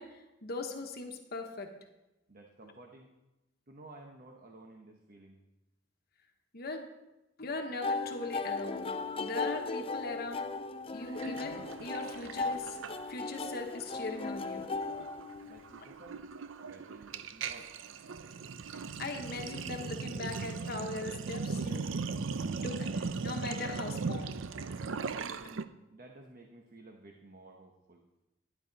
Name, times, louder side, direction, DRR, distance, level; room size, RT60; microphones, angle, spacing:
voice 1, 0.0-1.7 6.5-6.9 7.4-8.9 9.2-10.5 10.9-12.8 13.1-14.7 18.7-21.9 22.6-24.4, left 3 dB, 55° left, 4 dB, 1.1 m, -40 dB
voice 2, 2.3-3.1 3.7-5.4 15.5-16.2 16.6-17.7 25.0-28.0, right 2 dB, 45° right, 2 dB, 1.0 m, -53 dB
sound 1, 7.8-15.8, left 3 dB, 30° left, 0.5 m, -37 dB
Sink (filling or washing), 11.2-13.4 13.7-14.0 14.2-25.6, right 4 dB, 85° right, 0.5 m, -38 dB
11.5 x 10.5 x 4.0 m, 0.99 s
head